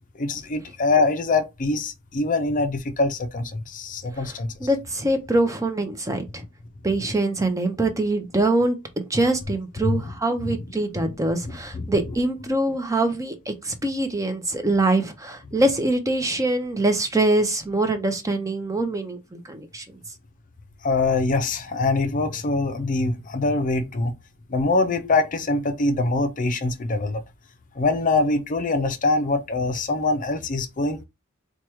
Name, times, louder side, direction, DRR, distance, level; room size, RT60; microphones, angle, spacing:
voice 1, 0.2-4.5 9.8-10.1 10.4-10.6 11.0-11.1 11.4-11.9 20.8-24.1 24.5-27.2 27.8-31.0, left 3 dB, 40° left, 0.5 m, -24 dB
voice 2, 4.6-6.4 6.8-19.8, right 2 dB, 15° right, 0.6 m, -24 dB
4.4 x 2.3 x 3.0 m
head